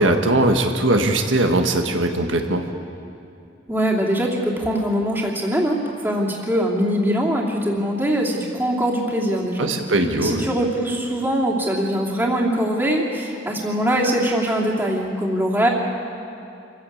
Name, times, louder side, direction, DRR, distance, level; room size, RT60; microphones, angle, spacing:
voice 1, 0.0-2.6 9.6-10.4, right 2 dB, 85° right, 4 dB, 1.6 m, -20 dB
voice 2, 3.7-9.8 10.2-15.7, equal, 10° right, -3 dB, 2.8 m, -22 dB
26.0 x 15.0 x 8.7 m, 2.5 s
head